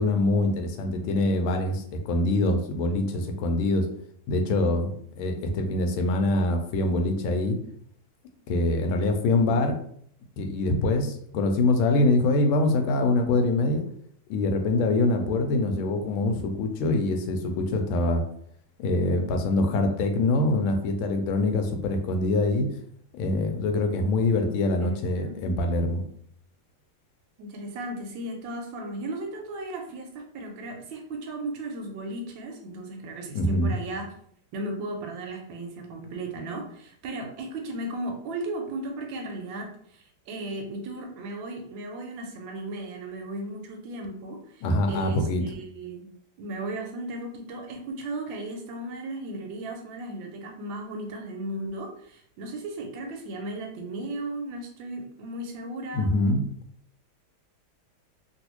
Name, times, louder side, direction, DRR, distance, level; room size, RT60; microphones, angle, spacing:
voice 1, 0.0-3.9 4.3-7.6 8.5-9.7 10.4-13.8 14.3-18.2 18.8-22.7 23.1-26.0 33.3-33.8 44.6-45.4 55.9-56.4, left 2 dB, 80° left, 5 dB, 1.4 m, -24 dB
voice 2, 24.8-25.7 27.4-34.1 34.5-46.1 46.4-56.1, right 2 dB, 75° right, 2 dB, 1.2 m, -36 dB
3.1 x 2.6 x 2.9 m, 0.66 s
omnidirectional pair, 2.3 m